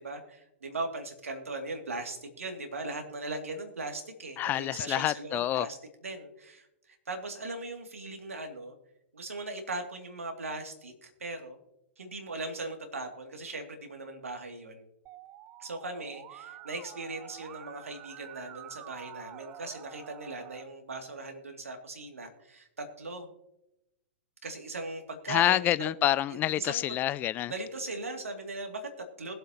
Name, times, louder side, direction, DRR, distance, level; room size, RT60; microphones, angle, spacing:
voice 1, 0.0-5.8 6.0-8.8 9.1-11.6 12.0-14.8 15.6-23.3 24.4-25.9 26.5-27.0 27.5-29.3, right 2 dB, 85° right, 2.5 m, -39 dB
voice 2, 4.4-5.7 25.3-27.5, left 13 dB, 25° left, 0.4 m, -27 dB
Musical instrument, 15.1-20.6, right 12 dB, 30° right, 0.6 m, -48 dB
21.0 x 7.7 x 2.9 m
hypercardioid pair, 120°, 7 cm